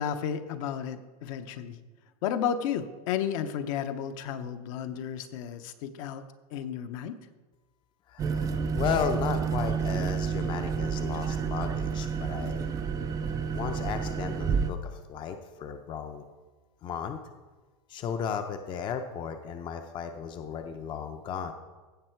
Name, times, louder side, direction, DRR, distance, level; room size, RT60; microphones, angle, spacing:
voice 1, 0.0-1.8 2.2-6.2 6.5-7.2, left 8 dB, 60° left, 9 dB, 0.8 m, -32 dB
voice 2, 8.1-12.7 13.5-16.2 16.8-17.2 17.9-21.5, left 7 dB, 25° left, 7 dB, 0.6 m, -34 dB
sound 1, 8.2-14.7, right 6 dB, 20° right, 0.5 m, -30 dB
15.5 x 6.7 x 4.5 m, 1.3 s
supercardioid pair, 145°, 20 cm